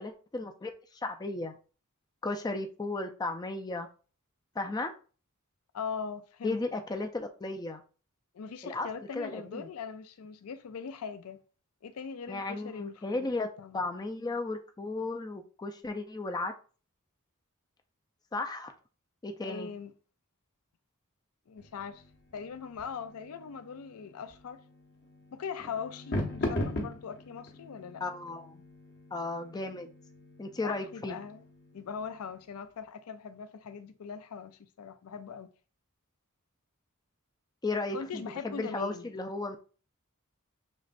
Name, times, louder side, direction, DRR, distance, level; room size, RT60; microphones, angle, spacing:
voice 1, 0.0-1.6 2.2-3.9 4.6-4.9 6.4-7.8 8.6-8.9 9.1-9.7 12.3-13.5 13.7-16.5 18.3-18.8 19.2-19.7 28.0-28.6 29.1-29.9 30.4-31.2 37.6-39.6, left 2 dB, 20° left, 0.4 m, -35 dB
voice 2, 5.7-6.6 8.3-11.4 11.8-13.3 13.6-13.9 19.4-19.9 21.5-22.0 22.3-24.6 25.3-28.0 30.6-31.4 31.7-35.5 37.9-39.2, left 6 dB, 85° left, 0.4 m, -41 dB
sound 1, 21.6-32.4, left 1 dB, 55° left, 1.0 m, -40 dB
6.2 x 3.2 x 2.5 m
head